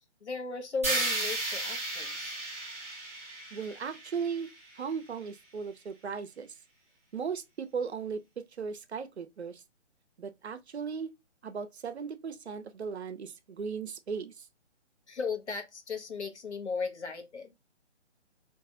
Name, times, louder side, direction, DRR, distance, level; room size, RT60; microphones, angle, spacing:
voice 1, 0.2-2.4 15.1-17.5, left 4 dB, 70° left, 1.0 m, -36 dB
sound 1, 0.8-4.9, right 2 dB, 15° right, 0.5 m, -34 dB
voice 2, 3.5-4.5 4.8-6.5 7.1-9.6 10.2-11.1 11.4-14.5, right 6 dB, 65° right, 0.6 m, -37 dB
3.9 x 2.6 x 2.3 m
figure-of-eight pair, 145°, 36 cm